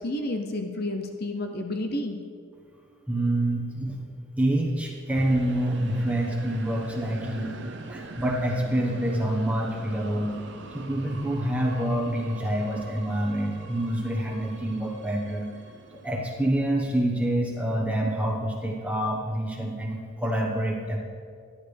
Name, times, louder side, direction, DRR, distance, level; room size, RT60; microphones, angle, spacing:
voice 1, 0.0-2.2, left 1 dB, 50° left, 5 dB, 0.6 m, -30 dB
voice 2, 3.1-4.0 4.4-7.5 7.9-10.3 10.7-15.5 16.0-21.0, right 1 dB, 5° right, -1 dB, 1.1 m, -27 dB
sound 1, 5.1-16.7, right 3 dB, 55° right, 0.7 m, -43 dB
11.5 x 10.5 x 3.3 m, 2.2 s
head